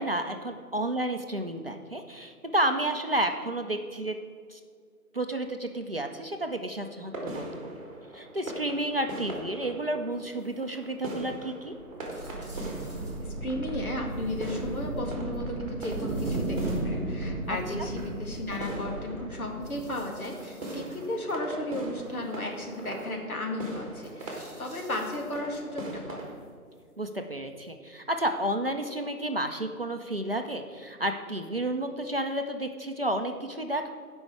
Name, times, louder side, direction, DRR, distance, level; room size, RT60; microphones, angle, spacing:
voice 1, 0.0-4.2 4.5-4.6 5.1-7.8 8.1-11.7 17.5-17.6 27.0-33.9, right 1 dB, 40° right, 5 dB, 0.5 m, -31 dB
sound 1, 6.9-26.4, right 1 dB, 25° right, 1.7 m, -41 dB
sound 2, 10.1-10.8 11.1-11.2 11.6-11.7 12.0-13.4 14.1-15.4 15.8-16.9 17.4-18.7 19.6-21.4 22.1-23.1 24.0-25.7 26.2-27.2 27.6-27.7, equal, 20° left, 2.1 m, -57 dB
sound 3, 11.8-20.2, right 2 dB, 5° left, 1.3 m, -35 dB
voice 2, 13.2-25.8 26.1-26.3, left 1 dB, 70° left, 1 dB, 2.3 m, -34 dB
15.0 x 5.3 x 4.8 m, 2.1 s
figure-of-eight pair, 160°, 45 cm